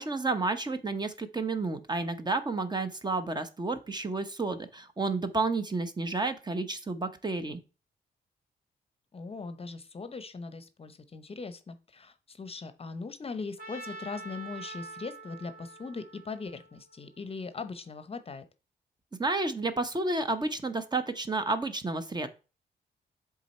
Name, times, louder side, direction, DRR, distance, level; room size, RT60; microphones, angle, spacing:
voice 1, 0.0-7.6 19.2-22.3, right 3 dB, 25° right, 10 dB, 0.8 m, -31 dB
voice 2, 9.1-18.4, left 4 dB, 35° left, 12 dB, 0.7 m, -40 dB
Trumpet, 13.6-17.6, right 3 dB, 55° right, 2.5 m, -46 dB
7.4 x 3.7 x 4.2 m, 0.33 s
cardioid pair, 80°, 18 cm